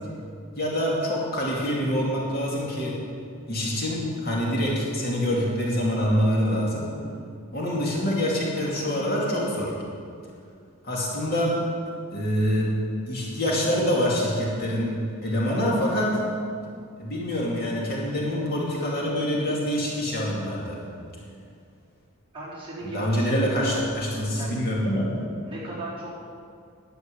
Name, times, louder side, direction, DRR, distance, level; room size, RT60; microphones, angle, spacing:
voice 1, 0.6-3.0 3.5-6.9 7.5-9.7 10.8-11.6 12.1-12.7 13.1-14.9 15.2-16.2 17.0-20.8 22.8-25.0, equal, 45° left, -4 dB, 2.6 m, -25 dB
voice 2, 22.3-23.8 24.4-24.6 25.4-26.1, right 1 dB, 25° right, -8 dB, 4.0 m, -37 dB
11.5 x 7.8 x 8.5 m, 2.3 s
head